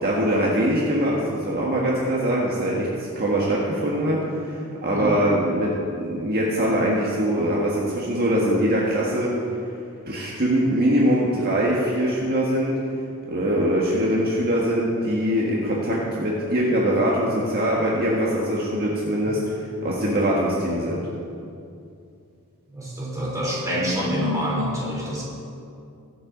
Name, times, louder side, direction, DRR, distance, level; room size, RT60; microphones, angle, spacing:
voice 1, 0.0-9.3 10.0-12.8 13.3-21.1, equal, 45° right, -4 dB, 1.6 m, -23 dB
voice 2, 22.7-25.2, equal, 15° right, -5 dB, 3.4 m, -26 dB
22.0 x 7.9 x 3.9 m, 2.5 s
head